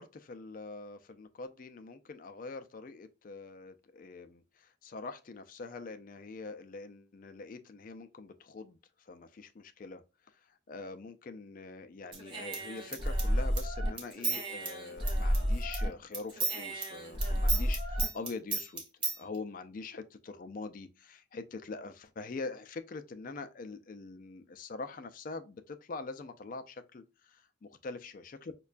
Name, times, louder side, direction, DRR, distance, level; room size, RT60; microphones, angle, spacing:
voice 1, 0.0-10.0 10.3-18.8 19.1-28.5, left 3 dB, 45° left, 0.4 m, -44 dB
Human voice / Scissors, 12.1-15.9 16.1-19.2, right 1 dB, 25° right, 0.8 m, -31 dB
5.3 x 2.2 x 2.4 m
head